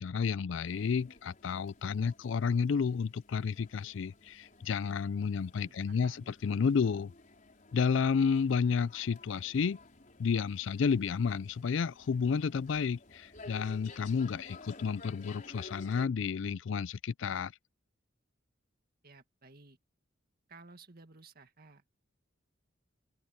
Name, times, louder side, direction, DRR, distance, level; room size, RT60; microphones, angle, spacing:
voice 1, 0.0-7.1 7.7-9.8 10.2-17.5, left 6 dB, 65° left, 0.4 m, -31 dB
sound 1, 0.6-16.1, left 2 dB, 40° left, 4.3 m, -55 dB
voice 2, 5.6-6.4 19.0-19.8 20.5-21.9, right 3 dB, 50° right, 2.0 m, -56 dB
open air
head